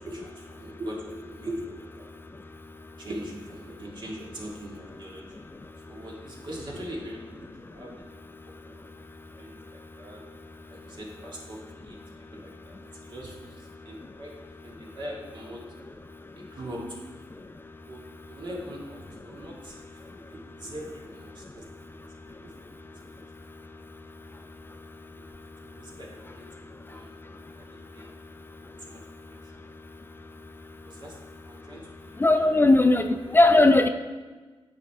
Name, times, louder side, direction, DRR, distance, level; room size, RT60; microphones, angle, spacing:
voice 1, 0.0-2.0 3.0-5.4 5.9-8.3 8.6-8.9 9.3-10.2 10.7-12.0 12.3-14.4 14.6-15.6 16.4-17.2 17.9-18.0 18.3-20.0 20.3-22.5 25.6-27.1 27.6-28.1 28.8-29.0 29.3-29.7 30.8-32.6, equal, 55° right, -3 dB, 2.1 m, -41 dB
voice 2, 32.2-33.9, left 2 dB, 20° left, 8 dB, 0.4 m, -18 dB
8.9 x 5.2 x 3.6 m, 1.3 s
cardioid pair, 55°, 10 cm